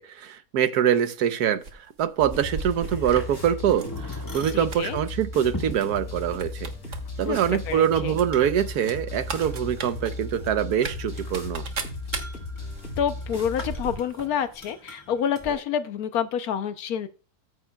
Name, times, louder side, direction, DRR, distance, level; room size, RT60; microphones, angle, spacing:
voice 1, 0.0-6.7 7.2-11.6, right 9 dB, 90° right, 1.3 m, -24 dB
sound 1, 1.6-3.2 3.7-4.0 4.3-5.1 5.7-5.9 6.1-7.0 7.3-7.4 8.1-14.3 14.5-14.6, right 4 dB, 55° right, 1.4 m, -37 dB
sound 2, 2.2-14.0, left 2 dB, 50° left, 3.3 m, -36 dB
sound 3, 2.4-15.5, left 1 dB, 15° left, 1.6 m, -43 dB
voice 2, 4.5-5.0 7.2-8.2 13.0-17.1, left 8 dB, 75° left, 1.2 m, -28 dB
14.0 x 7.8 x 2.3 m
omnidirectional pair, 1.6 m